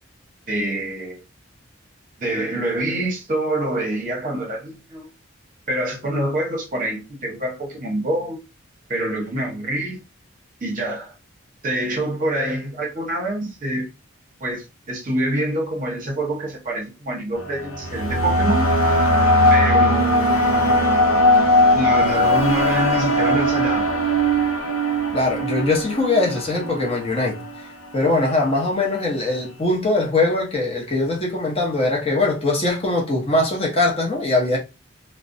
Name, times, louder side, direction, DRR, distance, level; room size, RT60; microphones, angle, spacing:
voice 1, 0.5-1.2 2.2-5.1 5.7-8.4 8.9-10.0 10.6-11.1 11.6-13.9 14.4-18.8 19.5-20.7 21.7-23.9, right 1 dB, 40° right, 0.8 m, -26 dB
sound 1, 17.4-27.6, equal, 90° left, 0.7 m, -19 dB
voice 2, 25.1-27.4 27.9-34.6, left 2 dB, 30° left, 0.7 m, -21 dB
2.3 x 2.1 x 2.5 m
head